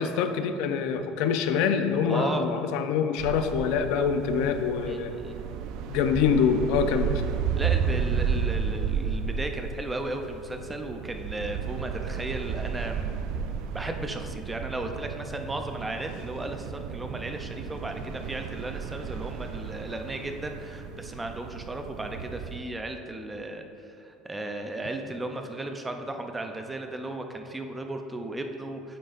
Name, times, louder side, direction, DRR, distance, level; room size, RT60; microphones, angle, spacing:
voice 1, 0.0-5.1 5.9-7.2, left 6 dB, 70° left, 8 dB, 0.5 m, -25 dB
voice 2, 2.1-2.4 4.9-5.5 7.5-13.2 13.7-29.0, right 2 dB, 10° right, 5 dB, 0.5 m, -35 dB
sound 1, 3.2-22.6, right 7 dB, 65° right, 0.5 m, -33 dB
9.0 x 6.5 x 2.5 m, 2.5 s
cardioid pair, 140°, 0 cm